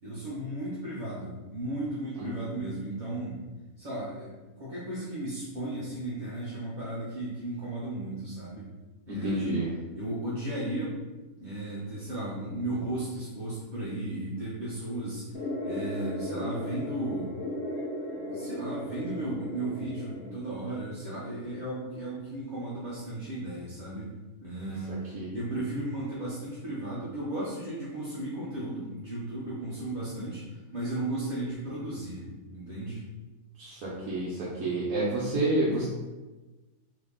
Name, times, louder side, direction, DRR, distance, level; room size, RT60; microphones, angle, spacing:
voice 1, 0.0-3.4 3.8-8.7 9.1-9.5 9.9-11.0 11.4-17.3 18.1-24.1 24.4-25.0 25.3-32.3 32.5-33.0, right 1 dB, 45° right, -9 dB, 0.6 m, -35 dB
voice 2, 9.1-9.7 25.1-25.3 33.6-35.9, right 2 dB, 70° right, -7 dB, 1.1 m, -29 dB
sound 1, 15.3-20.3, left 1 dB, 55° left, 0.8 m, -36 dB
3.0 x 2.7 x 3.6 m, 1.2 s
omnidirectional pair, 1.6 m